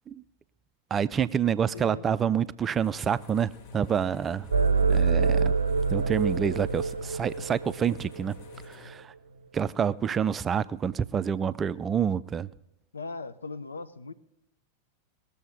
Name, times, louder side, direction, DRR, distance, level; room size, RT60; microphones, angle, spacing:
voice 1, 0.9-4.5 4.9-5.5 5.9-8.3 8.7-9.1 9.5-12.5, right 7 dB, 20° right, 0.4 m, -27 dB
voice 2, 1.7-2.1 12.9-14.1, left 3 dB, 75° left, 0.6 m, -39 dB
sound 1, 2.8-8.9, left 3 dB, 45° left, 1.3 m, -48 dB
sound 2, 4.5-8.5, right 5 dB, 75° right, 0.6 m, -26 dB
19.0 x 7.0 x 5.2 m
figure-of-eight pair, 90°, 0 cm